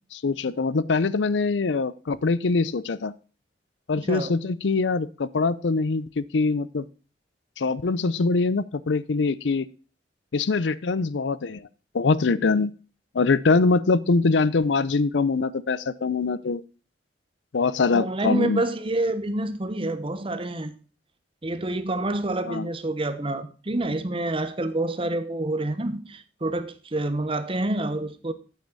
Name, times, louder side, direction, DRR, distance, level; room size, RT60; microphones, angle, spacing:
voice 1, 0.1-3.1 3.9-6.9 7.6-9.7 10.3-11.7 11.9-12.7 13.1-16.6 17.5-18.6 22.5-22.7, left 4 dB, 85° left, 0.5 m, -23 dB
voice 2, 4.0-4.3 17.9-20.7 21.4-28.3, right 2 dB, 30° right, 0.9 m, -28 dB
8.4 x 8.2 x 4.0 m
head